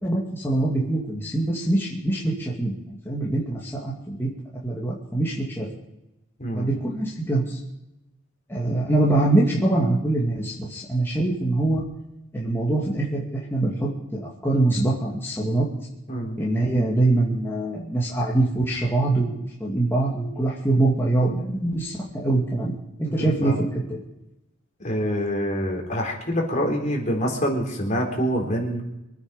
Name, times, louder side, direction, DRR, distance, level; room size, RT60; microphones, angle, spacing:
voice 1, 0.0-4.3 4.6-5.7 6.5-7.6 8.5-11.8 12.3-15.7 16.4-24.0, right 2 dB, 10° left, -5 dB, 2.5 m, -24 dB
voice 2, 6.4-6.7 16.1-16.4 23.0-23.5 24.8-28.8, equal, 40° left, 0 dB, 4.1 m, -26 dB
24.5 x 9.4 x 5.4 m, 0.92 s
head